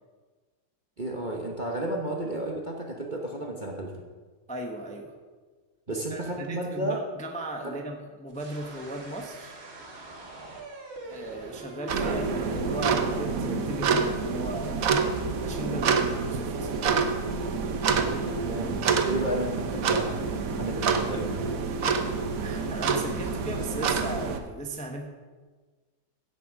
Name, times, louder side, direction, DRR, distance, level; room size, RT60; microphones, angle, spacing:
voice 1, 1.0-4.1 5.9-7.0 7.6-7.7 18.2-20.1 20.5-21.5, right 1 dB, 35° right, 0 dB, 0.9 m, -32 dB
voice 2, 4.5-5.1 5.9-9.6 11.0-15.0 15.4-16.7 22.4-25.1, right 1 dB, 5° left, 2 dB, 0.7 m, -37 dB
sound 1, 8.3-15.1, right 2 dB, 85° right, 2.6 m, -45 dB
sound 2, 11.9-24.4, right 5 dB, 55° right, 1.1 m, -27 dB
16.0 x 7.0 x 5.0 m, 1.4 s
omnidirectional pair, 2.1 m